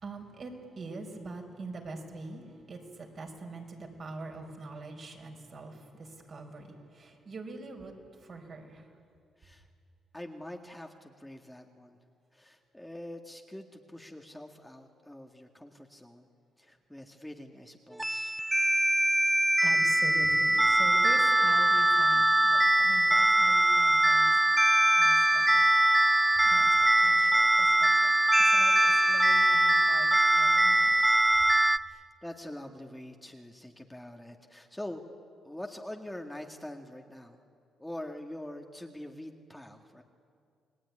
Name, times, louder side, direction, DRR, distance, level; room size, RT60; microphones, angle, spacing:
voice 1, 0.0-7.9 8.2-8.9 19.6-24.3 24.9-25.6 26.4-28.1 28.5-30.9, right 3 dB, 50° right, 2 dB, 5.2 m, -44 dB
voice 2, 10.1-12.0 12.3-16.3 16.6-18.4 31.8-35.0 35.4-37.4 37.8-40.0, left 1 dB, 5° left, 2 dB, 1.9 m, -44 dB
sound 1, 18.0-31.8, right 1 dB, 10° right, 0.7 m, -23 dB
29.0 x 20.0 x 9.8 m, 2.3 s
cardioid pair, 90°, 0 cm